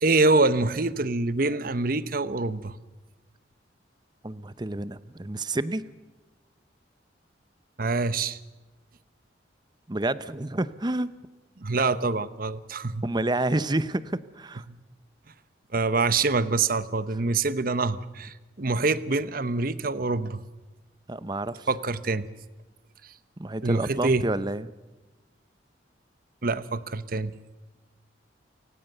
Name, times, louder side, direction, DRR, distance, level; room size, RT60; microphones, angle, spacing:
voice 1, 0.0-2.8 7.8-8.4 11.6-13.0 14.7-14.8 15.7-20.4 21.7-22.3 23.6-24.2 26.4-27.3, right 3 dB, 50° right, 15 dB, 0.9 m, -25 dB
voice 2, 4.2-5.8 9.9-11.2 13.0-14.6 21.1-21.7 23.4-24.7, right 2 dB, 25° right, 15 dB, 0.7 m, -29 dB
29.0 x 17.0 x 6.8 m, 1.2 s
head